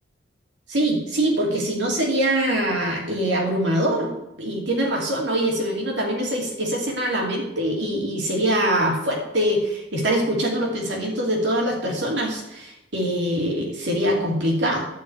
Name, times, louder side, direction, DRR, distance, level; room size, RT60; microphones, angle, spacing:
voice 1, 0.7-4.1 4.4-14.9, right 1 dB, 70° right, -1 dB, 2.7 m, -23 dB
11.5 x 4.8 x 7.9 m, 0.88 s
head